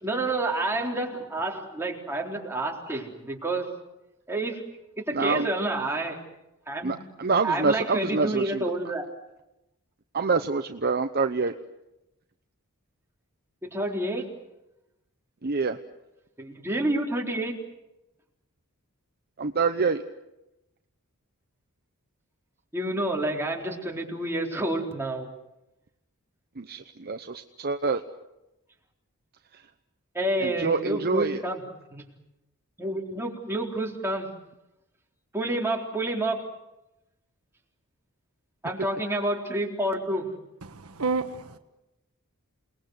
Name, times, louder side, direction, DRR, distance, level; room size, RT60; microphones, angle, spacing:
voice 1, 0.0-3.8 4.3-4.7 5.1-6.2 6.7-7.1 7.4-9.1 13.7-14.2 16.4-17.6 22.7-25.3 30.1-31.6 31.9-32.1 32.8-34.3 35.3-36.4 38.6-40.3, right 1 dB, 10° right, 3.9 m, -29 dB
voice 2, 5.1-5.5 6.8-8.7 10.1-11.5 15.4-15.8 19.4-20.0 26.6-28.0 30.4-31.4, right 4 dB, 45° right, 0.9 m, -26 dB
voice 3, 40.6-41.6, right 4 dB, 75° right, 1.4 m, -30 dB
28.5 x 20.5 x 8.0 m
head